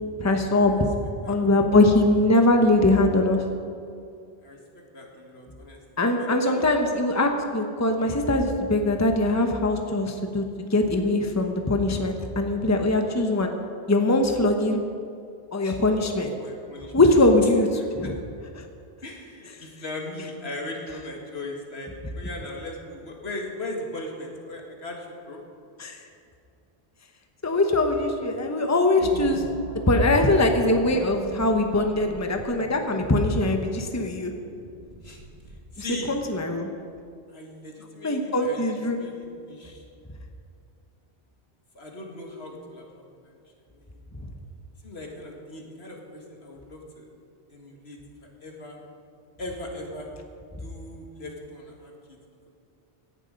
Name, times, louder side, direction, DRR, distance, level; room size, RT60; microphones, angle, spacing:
voice 1, 0.2-0.7 1.3-3.4 6.0-10.4 10.7-13.5 13.9-14.8 15.5-16.3 16.9-17.7 18.0-18.1 18.6-18.7 25.8-26.0 27.4-29.4 29.9-34.3 35.8-36.7 38.0-39.0, left 2 dB, 15° left, 4 dB, 1.0 m, -22 dB
voice 2, 4.4-5.8 6.2-6.7 15.6-15.8 16.3-17.1 17.8-18.1 19.0-25.4 35.0-35.2 35.7-36.2 37.3-39.8 41.7-43.4 43.7-44.0 44.8-47.1 47.5-48.8 49.4-50.1 50.6-52.2, left 2 dB, 75° left, 0 dB, 2.3 m, -39 dB
sound 1, 29.0-35.9, right 2 dB, 40° right, 1.6 m, -41 dB
17.0 x 11.0 x 5.3 m, 2.4 s
omnidirectional pair, 1.1 m